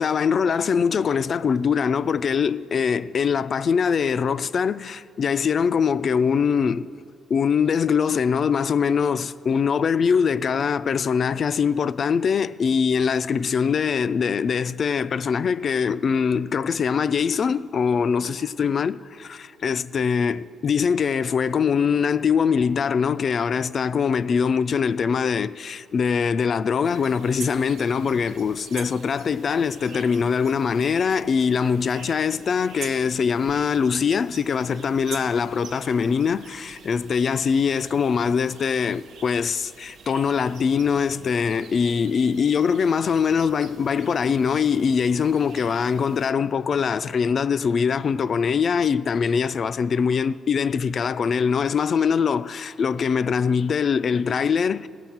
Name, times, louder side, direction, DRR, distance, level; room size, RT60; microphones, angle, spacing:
voice 1, 0.0-6.9 7.3-54.9, left 6 dB, 50° left, 0.3 m, -23 dB
sound 1, 26.8-46.3, right 6 dB, 75° right, 0.8 m, -45 dB
17.0 x 7.1 x 5.8 m
cardioid pair, 90°, 0 cm